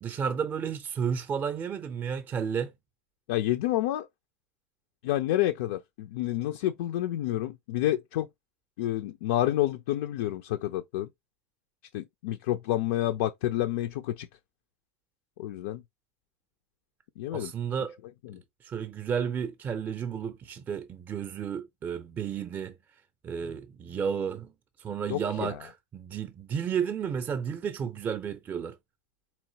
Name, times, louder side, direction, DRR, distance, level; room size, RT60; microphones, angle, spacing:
voice 1, 0.0-2.7 17.3-18.0 18.6-22.8 23.2-24.5 24.8-28.8, right 7 dB, 25° right, 0.5 m, -32 dB
voice 2, 3.3-4.1 5.0-8.3 8.8-11.1 11.9-14.3 15.4-15.8 17.2-17.5 18.2-18.4 25.1-25.6, left 14 dB, 55° left, 0.3 m, -29 dB
4.2 x 2.9 x 2.8 m
figure-of-eight pair, 85°, 7 cm